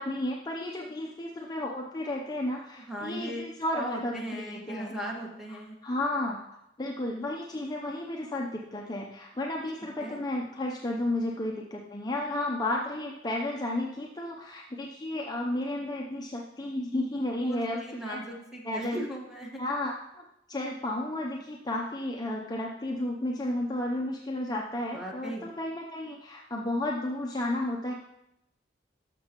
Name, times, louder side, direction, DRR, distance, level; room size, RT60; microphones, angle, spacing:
voice 1, 0.0-4.9 5.5-17.8 18.0-18.2 18.6-19.0 19.6-27.9, left 1 dB, 20° left, -1 dB, 0.6 m, -33 dB
voice 2, 2.9-3.4 3.7-5.8 10.0-10.2 17.4-19.6 24.9-25.5, right 1 dB, 5° right, -3 dB, 1.6 m, -37 dB
12.0 x 6.8 x 3.0 m, 0.84 s
head